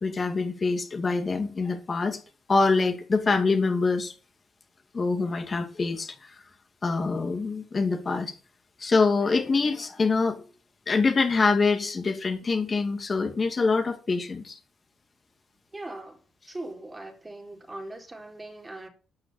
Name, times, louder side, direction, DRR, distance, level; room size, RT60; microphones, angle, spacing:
voice 1, 0.0-2.2 2.5-4.1 4.9-6.3 6.8-8.3 8.8-10.4 10.9-14.6, left 4 dB, 35° left, 2.3 m, -25 dB
voice 2, 15.7-16.2 16.5-18.9, right 2 dB, 20° right, 3.7 m, -40 dB
12.0 x 6.2 x 8.9 m
cardioid pair, 90°, 0 cm